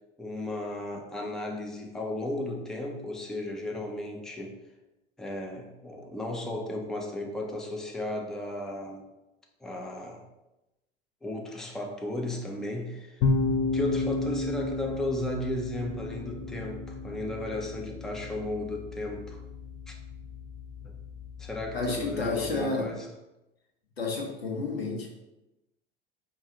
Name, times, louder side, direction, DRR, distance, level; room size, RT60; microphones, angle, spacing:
voice 1, 0.2-4.6 5.2-9.1 9.6-10.2 11.2-13.2 13.7-19.4 19.9-20.0 20.8-20.9 21.4-23.0, left 1 dB, ahead, 1 dB, 0.5 m, -35 dB
sound 1, 13.2-22.6, left 3 dB, 50° left, 0.5 m, -33 dB
voice 2, 21.7-22.9 24.0-25.1, left 3 dB, 80° left, 0 dB, 0.8 m, -30 dB
4.6 x 2.6 x 2.9 m, 0.97 s
figure-of-eight pair, 70°, 30 cm